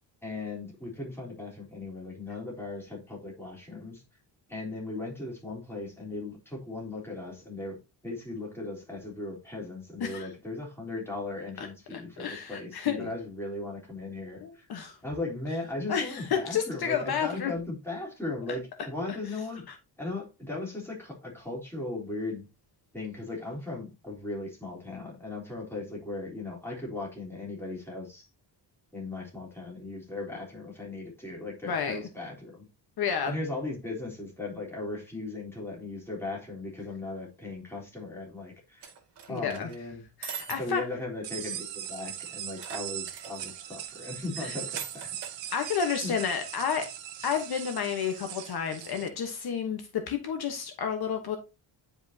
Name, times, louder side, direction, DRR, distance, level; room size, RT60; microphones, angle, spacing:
voice 1, 0.2-4.0 4.5-7.8 8.0-14.7 15.0-19.6 20.0-22.5 22.9-28.3 28.9-32.7 33.2-38.8 39.3-40.0 40.6-45.2 46.0-46.1, left 2 dB, 5° left, 3.6 m, -37 dB
voice 2, 11.6-13.1 14.4-15.0 15.9-17.5 20.1-20.2 31.7-32.0 33.0-33.3 39.3-39.7 40.2-40.8 44.4-44.5 45.5-46.9 47.2-51.4, left 7 dB, 55° left, 1.2 m, -31 dB
sound 1, 38.8-39.8 40.2-40.6 41.0-41.1 41.3-41.4 42.6-43.5 44.8-45.4, right 7 dB, 60° right, 2.2 m, -40 dB
sound 2, 41.2-49.1, right 11 dB, 80° right, 1.3 m, -40 dB
10.0 x 5.1 x 2.8 m
cardioid pair, 155°, 44 cm